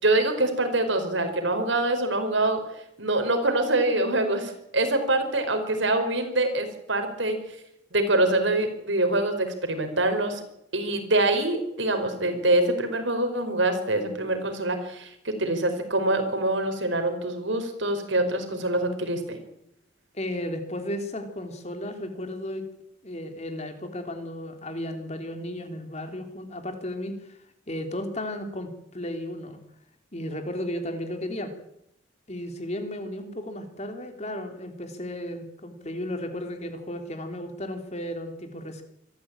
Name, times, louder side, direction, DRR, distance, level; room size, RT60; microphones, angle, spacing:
voice 1, 0.0-2.6 3.0-7.4 7.9-10.4 10.7-19.4, right 2 dB, 80° right, 6 dB, 4.8 m, -25 dB
voice 2, 20.1-22.6 23.0-27.4 27.7-29.6 30.1-31.6 32.3-38.8, left 1 dB, 35° left, 6 dB, 3.2 m, -34 dB
24.5 x 14.0 x 8.9 m, 0.79 s
head